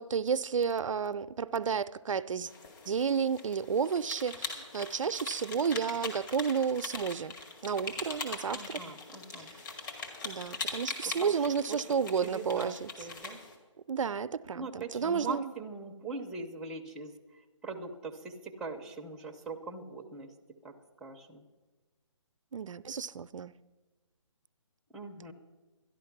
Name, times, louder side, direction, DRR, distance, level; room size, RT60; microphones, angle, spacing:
voice 1, 0.0-2.5 2.9-7.3 7.6-8.8 10.2-12.9 13.9-15.5 22.5-23.5, right 6 dB, 80° right, 0.5 m, -31 dB
sound 1, 2.5-13.6, left 4 dB, 40° left, 2.2 m, -42 dB
voice 2, 8.5-9.5 11.1-11.4 11.7-11.8 12.2-13.4 14.5-17.1 17.6-20.3 20.6-21.4 24.9-25.3, right 3 dB, 5° right, 0.6 m, -41 dB
12.5 x 11.0 x 5.9 m
hypercardioid pair, 155°, 16 cm